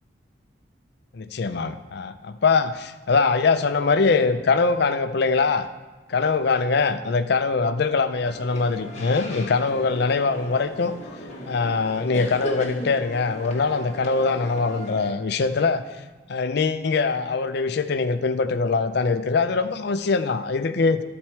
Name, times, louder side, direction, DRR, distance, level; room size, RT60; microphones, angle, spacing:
voice 1, 1.1-5.7 6.1-10.9 11.5-16.0 16.3-21.0, left 4 dB, 55° left, 11 dB, 0.4 m, -22 dB
sound 1, 8.2-15.1, equal, 35° left, 1.1 m, -37 dB
12.5 x 4.3 x 4.5 m, 1.2 s
head